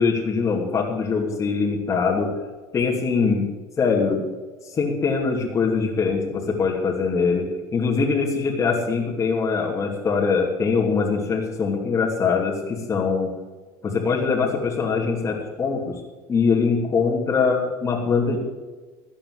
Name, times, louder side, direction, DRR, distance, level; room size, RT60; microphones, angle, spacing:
voice 1, 0.0-2.3 2.7-3.4 3.8-4.3 4.7-13.3 13.8-16.0 16.3-18.4, left 5 dB, 30° left, -2 dB, 2.8 m, -22 dB
14.0 x 8.7 x 8.1 m, 1.3 s
supercardioid pair, 100°, 9 cm